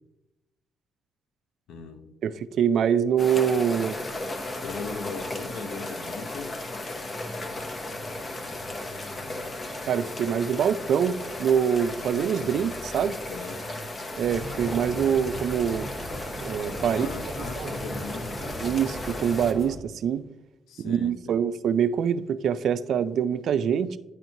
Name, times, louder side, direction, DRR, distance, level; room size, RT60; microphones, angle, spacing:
voice 1, 1.7-2.1 4.6-6.5 13.1-13.7 14.9-15.2 16.9-18.6 20.7-21.4, left 4 dB, 85° left, 0.6 m, -39 dB
voice 2, 2.2-4.0 9.9-13.2 14.2-15.9 16.4-17.1 17.6-17.7 18.6-20.2 20.8-24.0, right 8 dB, 70° right, 0.3 m, -25 dB
sound 1, 3.2-19.5, left 2 dB, 30° left, 0.7 m, -35 dB
sound 2, 14.2-19.8, right 1 dB, 5° left, 1.3 m, -38 dB
9.6 x 4.4 x 2.7 m
cardioid pair, 90°, 0 cm